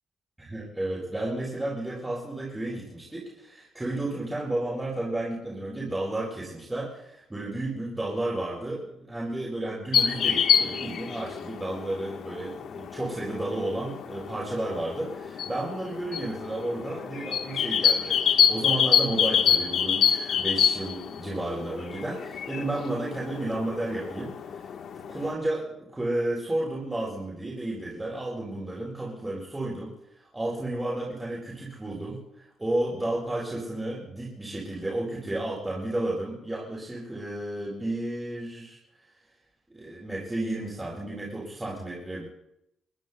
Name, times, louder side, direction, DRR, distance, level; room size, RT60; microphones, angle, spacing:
voice 1, 0.4-18.2 18.5-24.3 25.1-29.9 30.3-38.8 39.7-42.2, right 1 dB, 15° right, -6 dB, 7.8 m, -32 dB
sound 1, 9.9-25.3, left 8 dB, 70° left, 1.2 m, -27 dB
29.5 x 22.0 x 2.2 m, 0.78 s
cardioid pair, 90°, 0 cm